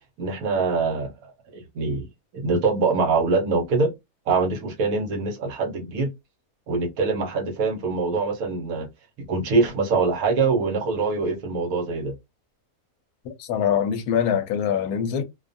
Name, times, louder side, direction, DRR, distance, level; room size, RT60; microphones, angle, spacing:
voice 1, 0.2-1.1 1.5-2.1 2.3-3.9 4.3-6.1 6.7-8.9 9.2-12.1, right 4 dB, 75° right, 1.2 m, -24 dB
voice 2, 13.2-15.2, left 8 dB, 75° left, 1.0 m, -24 dB
2.6 x 2.3 x 2.5 m
omnidirectional pair, 1.6 m